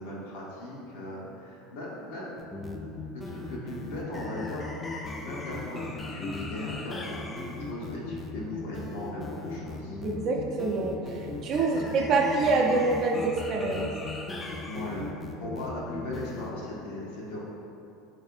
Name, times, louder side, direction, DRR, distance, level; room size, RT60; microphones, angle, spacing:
voice 1, 0.0-2.3 3.1-4.7 5.2-10.0 11.7-11.8 14.6-15.1 15.4-17.4, left 1 dB, 80° left, -5 dB, 0.8 m, -38 dB
sound 1, 2.4-16.5, left 3 dB, 20° left, 0.3 m, -38 dB
voice 2, 10.0-13.9, right 3 dB, 45° right, 1 dB, 0.5 m, -26 dB
3.4 x 3.3 x 2.5 m, 2.7 s
supercardioid pair, 100°, 0 cm